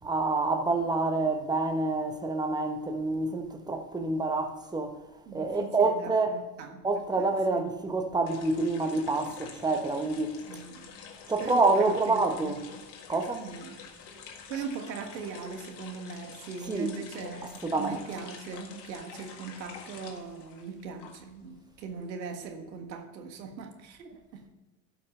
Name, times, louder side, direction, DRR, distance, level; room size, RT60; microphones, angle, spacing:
voice 1, 0.0-5.0 5.3-6.4 6.8-10.4 11.3-12.6 13.1-13.5 16.7-16.9 17.6-18.0, right 3 dB, 10° right, 1.0 m, -27 dB
voice 2, 5.3-6.9 7.2-7.7 10.5-10.9 11.4-12.5 13.4-13.8 14.5-24.5, right 5 dB, 90° right, 1.6 m, -40 dB
sound 1, 8.3-21.4 21.8-22.9, left 6 dB, 55° left, 1.8 m, -48 dB
12.5 x 5.8 x 5.5 m
hypercardioid pair, 90°, 50 cm